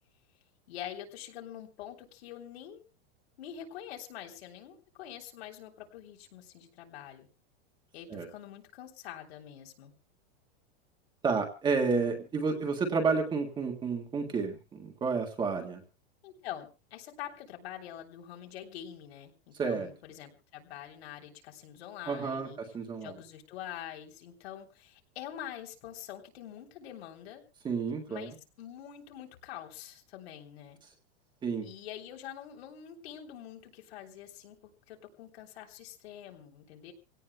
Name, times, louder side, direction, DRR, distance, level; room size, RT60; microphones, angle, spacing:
voice 1, 0.7-2.8 3.4-7.3 7.9-9.9 16.2-22.6 23.0-27.4 28.1-28.3 28.6-30.8 31.6-36.9, left 10 dB, 70° left, 2 dB, 3.4 m, -45 dB
voice 2, 11.2-15.8 19.6-19.9 22.1-23.1 27.6-28.3 31.4-31.7, right 4 dB, 15° right, 3 dB, 1.7 m, -30 dB
26.5 x 17.5 x 2.2 m, 0.30 s
supercardioid pair, 170°, 32 cm